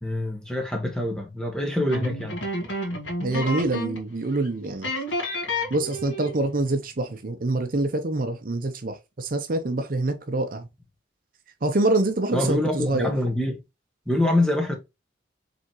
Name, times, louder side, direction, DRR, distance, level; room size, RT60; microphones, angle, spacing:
voice 1, 0.0-2.4 12.3-13.6 14.1-14.7, left 1 dB, 5° left, 1.1 m, -25 dB
sound 1, 1.9-4.1 4.3-4.5 4.8-6.5, left 1 dB, 85° left, 1.7 m, -30 dB
voice 2, 3.2-4.9 5.7-10.7 11.6-13.1, right 2 dB, 50° right, 0.6 m, -25 dB
4.9 x 3.5 x 3.0 m
head